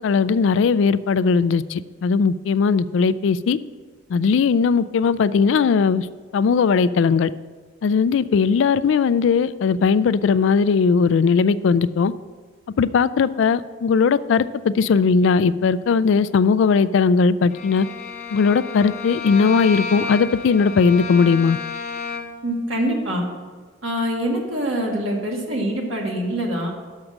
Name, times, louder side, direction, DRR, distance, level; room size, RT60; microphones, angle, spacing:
voice 1, 0.0-3.6 4.1-6.0 6.3-7.3 7.8-12.1 12.8-17.9 18.3-21.6, left 5 dB, 70° left, 16 dB, 0.3 m, -18 dB
Bowed string instrument, 17.5-22.5, left 4 dB, 35° left, 0.8 m, -31 dB
voice 2, 22.4-23.2 23.8-26.7, right 1 dB, 85° right, -1 dB, 1.9 m, -24 dB
6.5 x 6.0 x 7.4 m, 1.4 s
head